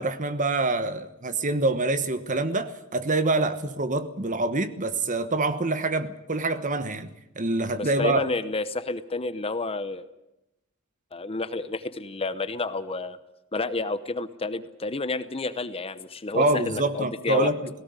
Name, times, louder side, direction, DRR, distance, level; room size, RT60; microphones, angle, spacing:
voice 1, 0.0-7.1 7.3-8.3 16.3-17.6, right 2 dB, 35° right, 11 dB, 1.2 m, -26 dB
voice 2, 7.7-10.1 11.1-13.2 13.5-17.5, left 3 dB, 25° left, 13 dB, 0.8 m, -30 dB
18.0 x 17.5 x 9.7 m, 0.91 s
head